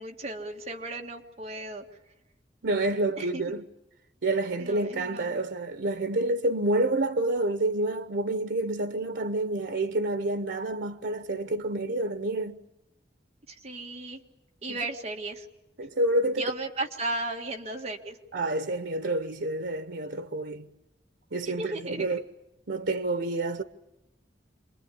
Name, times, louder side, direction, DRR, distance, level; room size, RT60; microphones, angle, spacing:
voice 1, 0.0-1.8 3.2-3.6 4.6-5.4 13.5-14.2 14.6-15.5 16.4-18.2 21.6-22.1, right 2 dB, 35° right, 2.1 m, -35 dB
voice 2, 2.6-3.6 4.2-12.6 15.8-16.4 18.3-20.7 21.3-22.3 22.7-23.6, right 2 dB, 85° right, 0.9 m, -28 dB
27.5 x 22.5 x 8.7 m
head